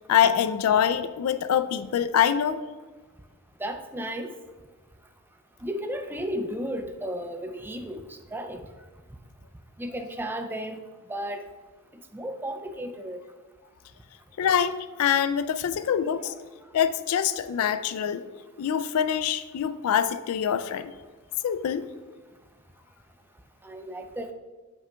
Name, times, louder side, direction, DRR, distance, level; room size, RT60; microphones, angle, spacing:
voice 1, 0.1-2.6 14.4-16.3 16.7-18.3 18.6-20.9 21.4-21.9, left 8 dB, 70° left, 12 dB, 0.3 m, -24 dB
voice 2, 3.6-4.3 5.6-8.6 9.8-10.8 11.1-11.4 12.1-13.2 16.2-16.3 23.6-24.3, equal, 10° right, 6 dB, 0.3 m, -34 dB
7.3 x 5.8 x 2.2 m, 1.3 s
head